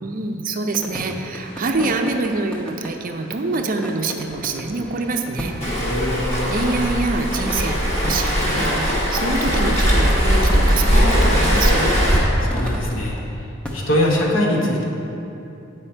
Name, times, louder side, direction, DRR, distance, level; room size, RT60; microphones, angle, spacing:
voice 1, 0.0-5.5 6.5-12.0, right 3 dB, 45° right, 5 dB, 0.5 m, -25 dB
sound 1, 0.7-11.3 12.0-13.2 13.6-14.2, equal, 5° left, 0.7 m, -35 dB
Waves surf, 5.6-12.2, equal, 30° left, 1.6 m, -19 dB
voice 2, 5.7-6.4 12.4-13.2 13.7-14.8, left 1 dB, 70° left, -2 dB, 1.2 m, -22 dB
8.6 x 4.9 x 4.4 m, 2.8 s
head